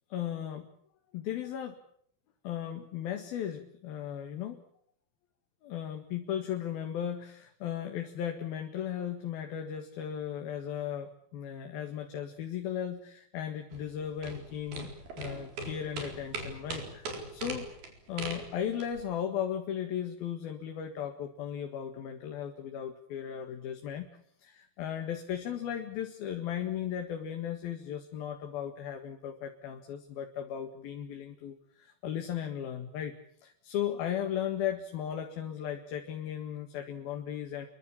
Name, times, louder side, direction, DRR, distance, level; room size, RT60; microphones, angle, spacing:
voice 1, 0.1-0.7 1.1-1.8 2.4-4.6 5.6-17.7 18.1-24.1 24.4-33.1 33.4-37.7, left 9 dB, 80° left, 4 dB, 3.7 m, -36 dB
sound 1, 13.7-19.0, right 2 dB, 80° right, 6.1 m, -40 dB
28.5 x 23.0 x 7.3 m, 0.66 s
omnidirectional pair, 4.2 m